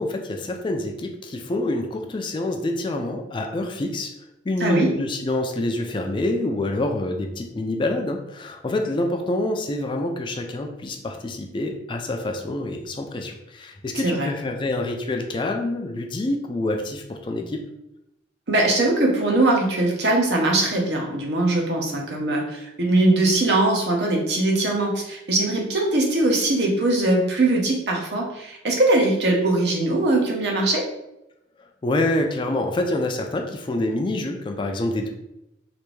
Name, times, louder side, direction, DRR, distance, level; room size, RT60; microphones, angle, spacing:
voice 1, 0.0-4.1 4.5-17.6 31.8-35.1, left 2 dB, 25° left, 4 dB, 0.3 m, -26 dB
voice 2, 4.6-4.9 13.9-14.3 18.5-30.8, right 2 dB, 65° right, 0 dB, 0.8 m, -21 dB
3.3 x 2.5 x 3.1 m, 0.87 s
head